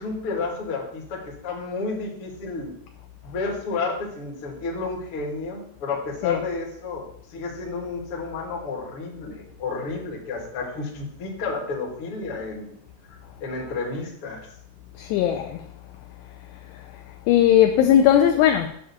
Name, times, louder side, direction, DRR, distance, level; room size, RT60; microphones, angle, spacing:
voice 1, 0.0-2.8 3.2-12.8 13.4-14.4, left 3 dB, 50° left, 1.7 m, -31 dB
voice 2, 15.0-15.6 16.7-16.8 17.3-18.7, left 10 dB, 85° left, 2.4 m, -18 dB
10.0 x 3.7 x 7.0 m
omnidirectional pair, 5.5 m